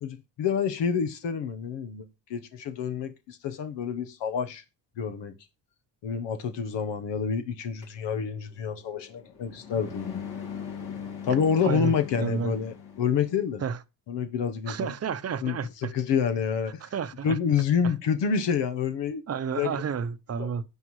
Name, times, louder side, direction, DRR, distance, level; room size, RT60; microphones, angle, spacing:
voice 1, 0.0-2.0 2.3-4.6 5.0-5.3 6.0-10.2 11.2-13.6 14.1-14.9 15.4-16.9 17.2-19.2 19.5-19.8 20.4-20.5, left 7 dB, 85° left, 1.1 m, -28 dB
sound 1, 7.8-13.4, left 7 dB, 60° left, 2.2 m, -40 dB
voice 2, 11.6-12.5 13.6-13.8 14.7-15.9 16.8-17.4 19.3-20.6, right 6 dB, 35° right, 0.7 m, -31 dB
16.0 x 5.7 x 3.2 m
cardioid pair, 115°, 42 cm